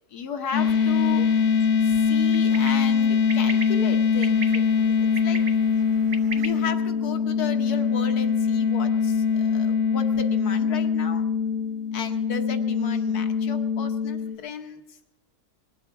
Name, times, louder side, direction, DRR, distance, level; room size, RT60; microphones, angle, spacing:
voice 1, 0.1-1.3 1.8-5.4 6.4-11.3 11.9-15.0, left 6 dB, 65° left, 7 dB, 1.5 m, -35 dB
sound 1, 0.5-14.4, left 6 dB, 45° left, 1.3 m, -23 dB
sound 2, 0.6-6.6, right 3 dB, 40° right, 0.8 m, -40 dB
20.0 x 8.1 x 7.0 m, 0.95 s
omnidirectional pair, 1.8 m